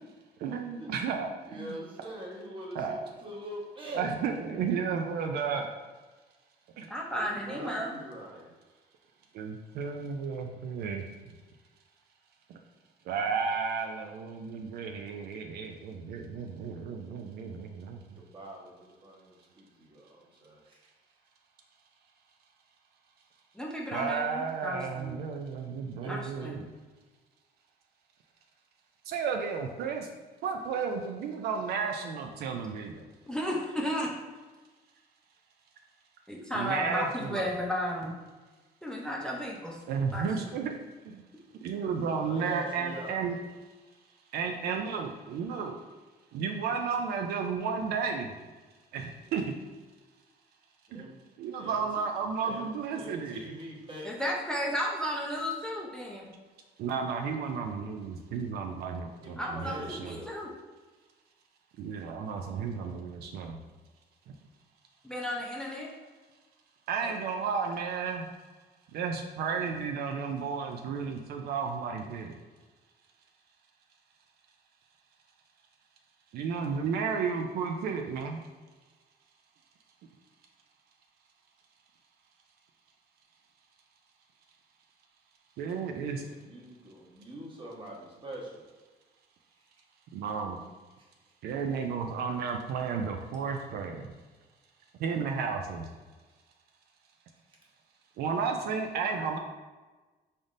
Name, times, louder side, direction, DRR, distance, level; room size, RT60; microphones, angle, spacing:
voice 1, 0.4-1.8 2.7-3.0 3.9-5.7 6.8-6.9 9.3-11.0 12.5-12.6 13.1-18.0 23.9-26.6 29.1-30.1 30.4-33.0 36.5-37.5 39.9-40.7 41.1-41.2 41.6-43.4 44.3-45.8 46.3-48.3 48.9-49.4 50.9-51.0 51.4-53.4 56.8-60.2 61.8-63.6 66.9-68.3 68.9-72.3 76.3-78.4 85.6-86.2 90.1-90.6 91.4-94.1 95.0-95.8 98.2-99.4, right 5 dB, 70° right, 4 dB, 0.4 m, -33 dB
voice 2, 1.5-4.1 6.8-8.5 18.1-20.6 26.0-26.1 26.4-26.5 42.0-43.2 50.9-51.1 51.6-51.8 52.4-54.1 59.2-60.3 85.9-88.6 91.0-91.1, right 1 dB, 30° right, -3 dB, 1.1 m, -44 dB
voice 3, 6.9-8.0 23.5-25.2 26.1-26.6 33.3-34.1 36.3-38.1 38.8-39.8 40.1-40.2 54.0-56.2 59.4-60.5 65.0-65.9 99.1-99.3, equal, 5° left, -2 dB, 0.5 m, -33 dB
3.9 x 3.4 x 2.5 m, 1.3 s
cardioid pair, 110°, 17 cm